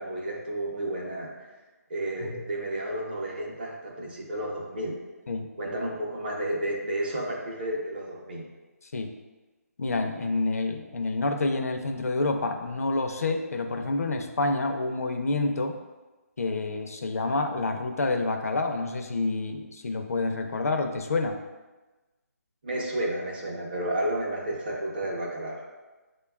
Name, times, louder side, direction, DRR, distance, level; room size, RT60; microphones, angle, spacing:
voice 1, 0.0-1.3 1.9-5.0 5.6-8.5 22.6-25.7, right 1 dB, 35° right, -2 dB, 0.7 m, -31 dB
voice 2, 9.8-15.8 16.4-21.4, left 3 dB, 65° left, 5 dB, 0.4 m, -28 dB
6.4 x 2.2 x 2.3 m, 1.2 s
hypercardioid pair, 170°, 9 cm